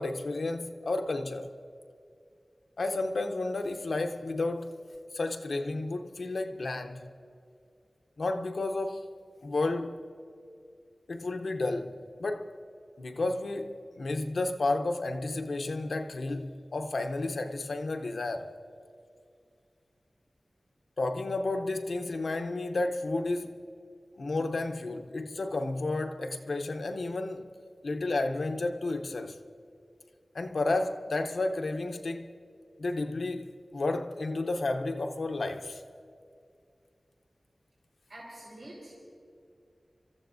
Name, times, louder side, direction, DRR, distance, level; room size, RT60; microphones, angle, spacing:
voice 1, 0.0-1.5 2.8-4.8 5.1-7.1 8.2-9.1 9.4-10.0 11.1-12.6 13.0-18.6 21.0-23.6 24.2-27.5 27.8-29.4 30.3-32.3 32.8-35.8, left 2 dB, 80° left, 0.7 m, -32 dB
voice 2, 38.1-38.9, right 1 dB, 85° right, 4.0 m, -46 dB
28.0 x 13.5 x 2.6 m
wide cardioid pair, 60°, 0 cm